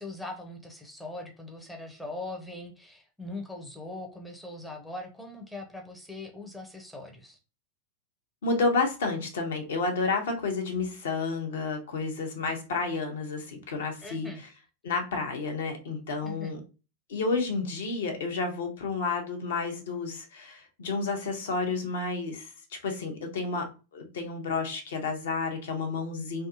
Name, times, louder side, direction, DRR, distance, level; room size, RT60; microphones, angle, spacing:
voice 1, 0.0-7.4 14.0-14.4 16.2-16.6, left 2 dB, 5° left, 2 dB, 0.5 m, -41 dB
voice 2, 8.4-14.3 14.8-16.6 17.1-22.5 22.8-26.5, left 4 dB, 60° left, 3 dB, 0.7 m, -30 dB
2.6 x 2.3 x 2.8 m, 0.32 s
figure-of-eight pair, 90°, 0 cm